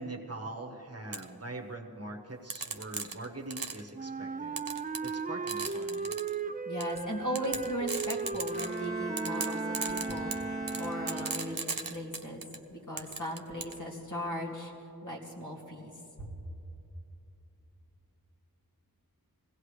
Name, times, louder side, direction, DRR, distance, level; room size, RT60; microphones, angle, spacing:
voice 1, 0.0-4.7 5.0-6.1, right 2 dB, 40° right, 1 dB, 1.2 m, -42 dB
sound 1, 1.1-1.2 2.5-3.9 4.6-5.2 5.5-6.3 6.8-7.0 7.4-8.9 9.2-12.6 13.0-13.8, right 4 dB, 60° right, 0.8 m, -36 dB
Wind instrument woodwind instrument, 3.9-11.6, right 5 dB, 25° right, 0.4 m, -37 dB
voice 2, 6.7-12.4 12.7-14.7 15.0-15.9 16.2-16.3, equal, 55° left, -2 dB, 2.3 m, -37 dB
Bowed string instrument, 8.5-11.8, equal, ahead, 1.3 m, -39 dB
20.5 x 16.5 x 3.3 m, 3.0 s
wide cardioid pair, 45°, 37 cm